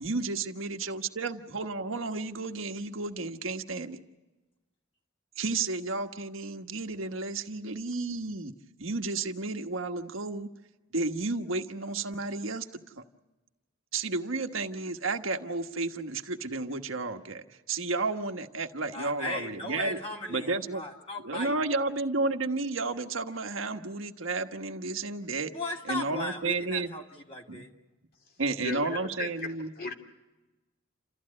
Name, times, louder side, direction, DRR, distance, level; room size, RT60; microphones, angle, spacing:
voice 1, 0.0-4.0 5.4-8.5 8.8-10.5 10.9-12.7 13.9-20.0 20.3-20.8 21.2-25.5 25.9-27.0 27.5-27.6 28.4-29.7, right 3 dB, 90° right, 6 dB, 1.4 m, -32 dB
voice 2, 18.9-21.7 25.5-27.7, left 2 dB, 30° left, 0 dB, 2.5 m, -37 dB
voice 3, 28.6-29.9, left 3 dB, 50° left, 4 dB, 2.6 m, -37 dB
29.0 x 14.5 x 9.8 m, 1.1 s
head